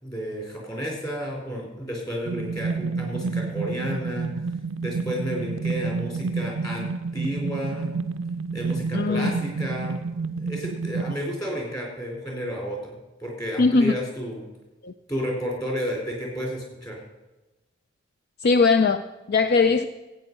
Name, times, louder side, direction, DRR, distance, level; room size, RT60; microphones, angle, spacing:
voice 1, 0.0-4.3 4.8-7.9 8.5-10.0 10.4-14.4 15.1-17.0, equal, 20° left, 0 dB, 3.9 m, -31 dB
sound 1, 2.2-11.2, right 4 dB, 75° right, 0.4 m, -29 dB
voice 2, 8.9-9.3 13.6-14.0 14.8-14.9 18.4-19.9, left 4 dB, 55° left, 10 dB, 0.4 m, -20 dB
16.0 x 8.6 x 5.4 m, 1.1 s
head